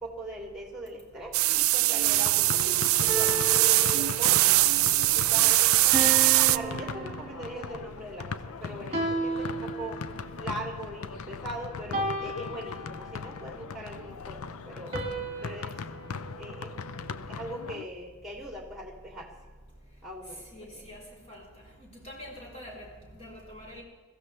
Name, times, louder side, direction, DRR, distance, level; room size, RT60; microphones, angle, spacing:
voice 1, 0.0-4.6 5.1-10.0 10.4-15.0 15.4-15.8 16.4-16.8 17.3-19.3 20.0-20.9, right 1 dB, ahead, 2.7 m, -41 dB
sound 1, 1.3-6.6, right 18 dB, 65° right, 0.3 m, -22 dB
sound 2, 2.1-17.8, left 5 dB, 70° left, 0.5 m, -39 dB
sound 3, 3.1-4.6 5.9-7.8 8.9-10.4 11.9-13.4 14.9-17.2, right 3 dB, 25° right, 1.9 m, -35 dB
voice 2, 20.5-21.0 21.3-21.4 22.0-22.9 23.2-23.8, left 1 dB, 30° left, 3.6 m, -44 dB
21.5 x 15.0 x 3.3 m
head